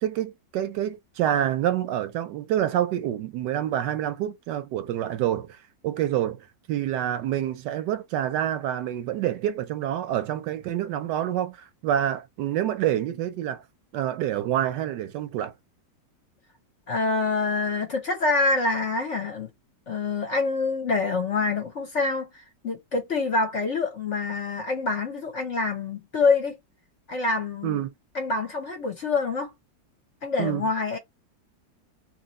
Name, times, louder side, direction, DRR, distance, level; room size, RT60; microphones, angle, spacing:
voice 1, 0.0-13.6 13.9-15.5 27.6-27.9 30.4-30.6, right 11 dB, 75° right, 1.1 m, -27 dB
voice 2, 16.9-19.5 19.9-26.6 27.1-27.8 28.1-29.5 30.2-31.0, left 3 dB, 50° left, 1.0 m, -26 dB
2.9 x 2.9 x 4.0 m
omnidirectional pair, 2.0 m